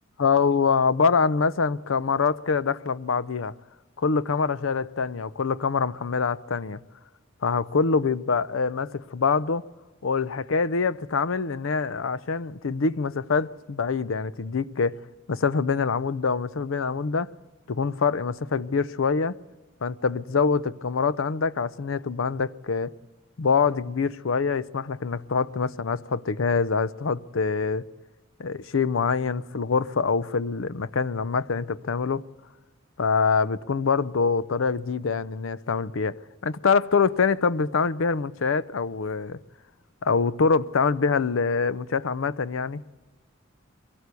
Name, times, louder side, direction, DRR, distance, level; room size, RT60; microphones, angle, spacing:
voice 1, 0.2-3.5 4.0-6.8 7.4-9.6 10.0-15.0 15.3-17.3 17.7-19.3 19.8-22.9 23.4-27.8 28.4-32.2 33.0-39.4 40.0-42.8, left 5 dB, 85° left, 0.6 m, -25 dB
23.5 x 17.5 x 8.3 m
head